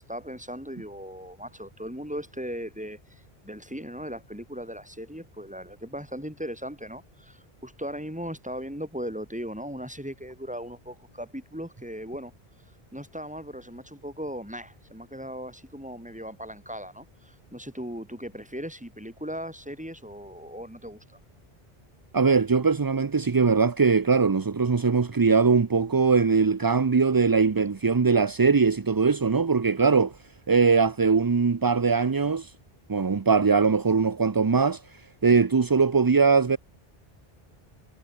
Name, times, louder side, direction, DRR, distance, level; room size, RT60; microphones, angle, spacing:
voice 1, 0.1-12.3 12.9-21.2, equal, 5° right, 4.9 m, -38 dB
voice 2, 22.1-30.1 30.5-32.5 32.9-34.8 35.2-36.6, right 5 dB, 30° right, 0.5 m, -21 dB
omnidirectional pair, 1.0 m